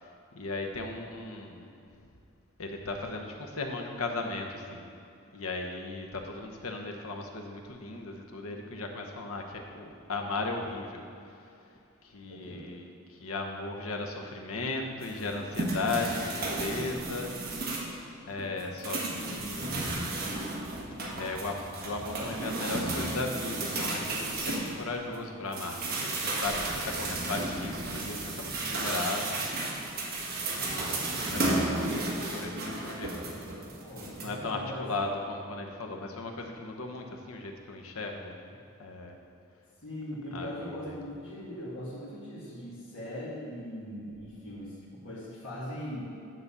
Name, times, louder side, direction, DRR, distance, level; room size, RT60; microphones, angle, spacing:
voice 1, 0.0-1.7 2.6-4.9 5.3-11.0 12.0-17.6 18.2-20.0 21.2-29.4 30.5-33.6 34.1-39.2 40.3-41.0, left 3 dB, 85° left, 2 dB, 1.0 m, -36 dB
voice 2, 12.2-12.7 33.8-34.9 39.8-46.1, left 1 dB, 60° left, -10 dB, 2.1 m, -40 dB
sound 1, 15.0-18.0 18.4-25.2 25.5-34.3, right 2 dB, 45° right, 1.4 m, -33 dB
9.6 x 4.1 x 6.9 m, 2.6 s
head